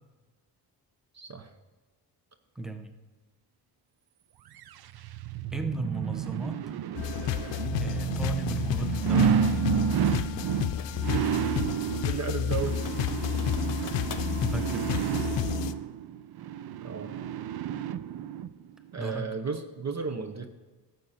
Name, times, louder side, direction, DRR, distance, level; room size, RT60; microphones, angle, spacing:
voice 1, 1.1-1.5 11.1-11.4 12.1-12.8 13.8-14.0 16.8-17.1 18.9-20.5, right 5 dB, 40° right, 8 dB, 0.9 m, -34 dB
voice 2, 2.5-3.0 5.5-6.7 7.8-9.7 14.4-15.7 19.0-19.3, right 2 dB, ahead, 7 dB, 1.0 m, -36 dB
sound 1, 4.6-18.5 18.9-19.0, right 8 dB, 60° right, 0.6 m, -30 dB
sound 2, 7.0-15.7, left 10 dB, 80° left, 0.6 m, -31 dB
sound 3, 8.8-9.0 10.3-11.6 12.0-12.1 12.6-14.3, left 7 dB, 50° left, 1.0 m, -45 dB
11.5 x 7.9 x 4.3 m, 1.3 s
cardioid pair, 70°, 43 cm